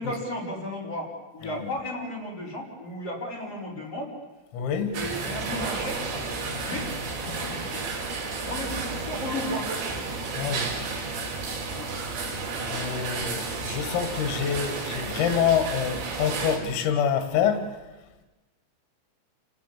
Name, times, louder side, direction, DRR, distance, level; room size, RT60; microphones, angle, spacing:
voice 1, 0.0-4.1 4.9-6.0 6.6-6.9 7.2-9.7 11.7-11.9, left 1 dB, 30° left, -3 dB, 5.3 m, -34 dB
voice 2, 4.5-5.0 10.4-10.8 12.7-17.7, left 7 dB, 90° left, 8 dB, 4.6 m, -26 dB
sound 1, 4.9-16.6, right 4 dB, 65° right, 5.7 m, -32 dB
29.5 x 19.0 x 7.5 m, 1.2 s
omnidirectional pair, 5.8 m